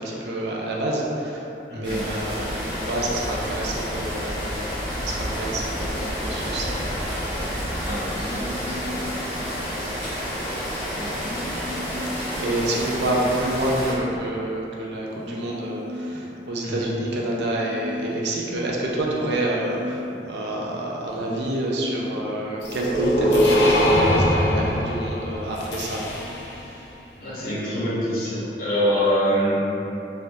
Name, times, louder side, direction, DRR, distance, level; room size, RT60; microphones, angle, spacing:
voice 1, 0.0-1.5 1.7-4.8 5.0-6.8 12.4-26.0, right 1 dB, 75° right, -3 dB, 0.5 m, -28 dB
sound 1, 1.8-13.9, equal, 10° left, 0.9 m, -29 dB
voice 2, 7.8-8.9 10.9-11.1 16.6-16.9 27.2-29.6, equal, 50° left, -10 dB, 0.9 m, -25 dB
sound 2, 8.1-9.3 11.1-12.3 13.1-14.3 15.1-16.3 17.1-18.3 19.1-20.3 21.1-22.3 23.1-23.4, left 1 dB, 35° right, 0.7 m, -36 dB
sound 3, 22.6-26.6, equal, 80° left, 0.5 m, -22 dB
3.4 x 2.3 x 2.6 m, 2.8 s
head